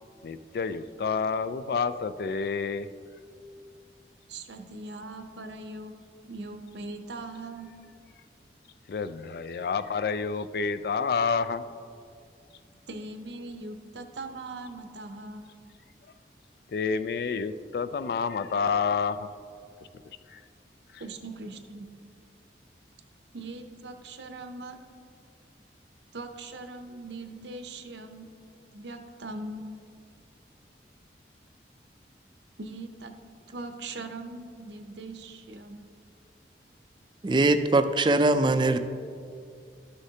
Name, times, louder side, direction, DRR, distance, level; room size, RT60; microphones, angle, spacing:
voice 1, 0.2-2.9 8.9-11.6 16.7-19.3 20.3-20.4 20.9-21.0, left 5 dB, 60° left, 12 dB, 0.3 m, -29 dB
voice 2, 4.3-5.9 6.2-7.7 12.9-15.5 21.0-21.9 23.3-24.8 26.1-28.3 28.7-29.7 32.6-33.1 33.5-35.8, right 2 dB, 85° right, 6 dB, 0.7 m, -40 dB
voice 3, 37.2-38.8, right 2 dB, 25° right, 9 dB, 0.3 m, -22 dB
13.0 x 6.5 x 2.8 m, 2.3 s
head